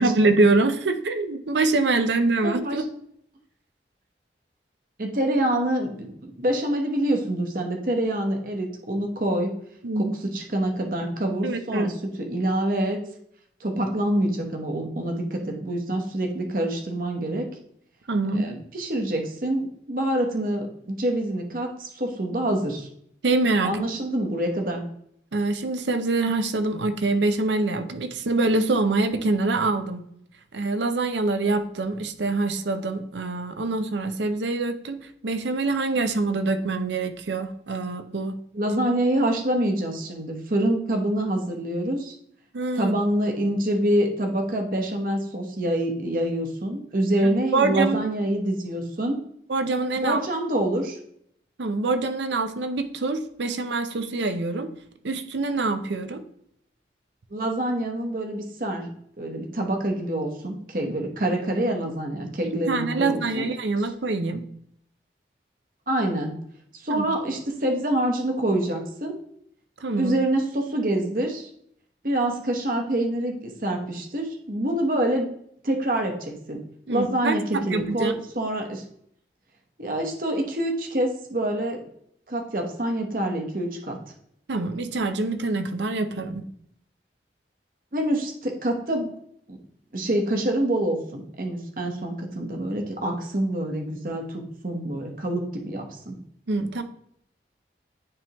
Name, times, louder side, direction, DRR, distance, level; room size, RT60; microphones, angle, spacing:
voice 1, 0.0-2.8 9.8-10.1 11.4-11.9 18.1-18.5 23.2-23.8 25.3-30.0 30.5-35.0 35.2-38.4 42.5-43.0 47.5-48.1 49.5-50.2 51.6-54.7 55.0-56.2 60.9-61.0 62.7-64.4 66.9-67.1 69.8-70.1 76.9-78.1 84.5-86.4 96.5-96.8, right 3 dB, 85° right, 9 dB, 0.6 m, -25 dB
voice 2, 2.4-2.8 5.0-9.5 9.9-13.0 13.6-17.5 18.3-22.9 23.6-24.8 38.5-42.1 42.7-49.2 49.9-51.0 57.3-58.9 59.2-63.5 65.9-66.3 66.8-69.2 70.0-71.5 72.0-75.3 75.6-76.6 76.9-78.8 79.8-81.8 82.3-84.0 87.9-89.1 89.5-89.6 89.9-96.2, right 1 dB, 50° right, 3 dB, 1.0 m, -26 dB
9.7 x 3.5 x 2.9 m, 0.70 s
head